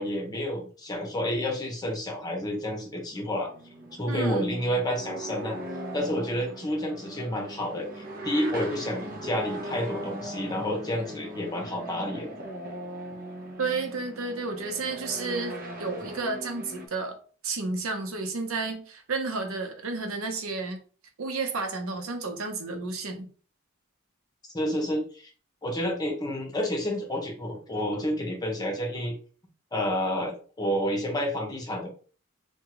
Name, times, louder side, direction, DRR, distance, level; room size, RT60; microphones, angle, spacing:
voice 1, 0.0-3.5 4.0-5.6 5.9-12.3 24.5-25.3 25.6-29.1 29.7-31.9, equal, 20° left, 1 dB, 0.9 m, -30 dB
sound 1, 3.3-16.9, right 1 dB, 45° right, 0.7 m, -39 dB
voice 2, 4.1-4.6 13.6-17.2 17.4-20.8 21.2-23.3, right 3 dB, 85° right, 4 dB, 0.7 m, -31 dB
3.5 x 2.3 x 3.0 m, 0.39 s
head